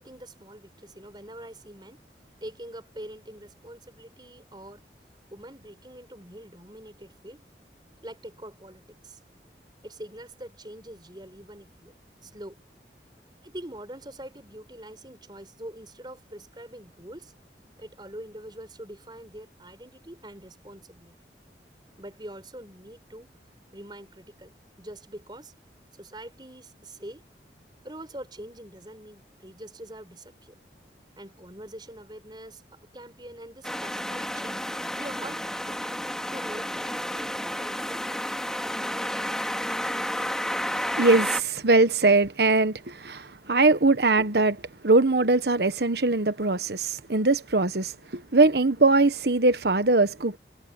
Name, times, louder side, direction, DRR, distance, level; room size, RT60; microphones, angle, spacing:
voice 1, 0.0-2.0 2.4-4.8 5.3-7.4 8.0-9.2 9.8-12.6 13.4-17.3 17.8-21.1 22.0-23.3 23.7-24.5 24.8-25.5 25.9-27.3 27.8-30.6 31.1-34.6 34.9-35.8 36.3-38.0, right 1 dB, 25° right, 5.6 m, -44 dB
sound 1, 33.6-41.4, equal, 5° left, 2.2 m, -31 dB
voice 2, 41.0-50.4, right 3 dB, 70° right, 1.2 m, -22 dB
head